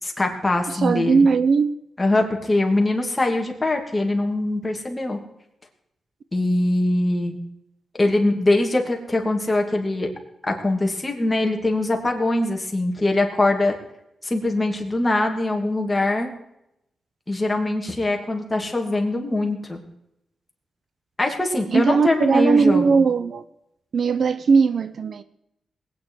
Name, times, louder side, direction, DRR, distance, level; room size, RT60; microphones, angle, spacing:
voice 1, 0.0-1.3 2.0-5.2 6.3-7.3 8.0-10.1 10.4-13.7 14.2-16.3 17.3-19.8 21.2-23.0, left 2 dB, 20° left, 2 dB, 2.8 m, -22 dB
voice 2, 0.7-1.7 21.7-23.4 23.9-25.2, right 5 dB, 60° right, 13 dB, 0.7 m, -18 dB
20.5 x 9.4 x 4.8 m, 0.81 s
cardioid pair, 95°, 0 cm